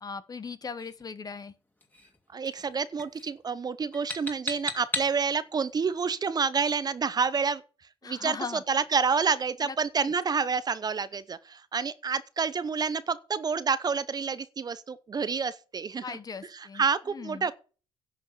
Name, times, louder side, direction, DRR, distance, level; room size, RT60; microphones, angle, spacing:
voice 1, 0.0-1.5 8.0-8.6 9.6-9.7 10.0-10.1 16.0-16.8 17.1-17.5, left 5 dB, 35° left, 1.1 m, -38 dB
sound 1, 0.8-1.0 1.8-2.2 2.4-2.7 3.0-3.4 3.9-5.2, left 1 dB, 15° left, 2.7 m, -36 dB
voice 2, 2.3-7.6 8.0-16.2 16.5-17.5, right 5 dB, 40° right, 0.8 m, -28 dB
11.0 x 5.7 x 6.8 m
supercardioid pair, 65°, 11 cm